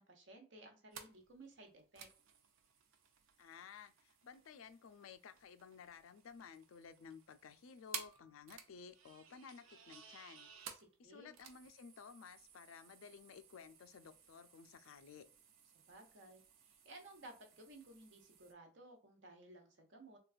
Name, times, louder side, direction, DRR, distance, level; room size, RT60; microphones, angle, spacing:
voice 1, 0.0-2.1 10.7-11.3 15.7-20.2, right 2 dB, 65° right, 1.0 m, -58 dB
sound 1, 0.9-18.5, right 7 dB, 80° right, 0.6 m, -56 dB
voice 2, 3.4-10.5 11.0-15.3, left 6 dB, 90° left, 0.4 m, -55 dB
3.8 x 2.4 x 2.4 m
head